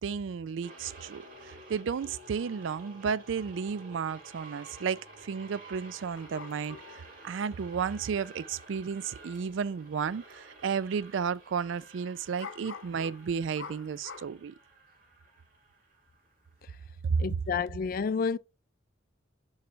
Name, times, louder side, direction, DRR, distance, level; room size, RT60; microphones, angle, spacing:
voice 1, 0.0-14.5 17.0-17.2, right 6 dB, 75° right, 0.4 m, -33 dB
sound 1, 0.6-16.9, right 2 dB, 45° right, 1.9 m, -52 dB
sound 2, 6.1-7.0 8.9-9.0 9.3-9.4 10.1-10.3 10.6-10.7 12.4-14.3, left 5 dB, 90° left, 0.7 m, -45 dB
voice 2, 17.2-18.4, left 5 dB, 50° left, 0.3 m, -30 dB
6.8 x 3.2 x 5.1 m
head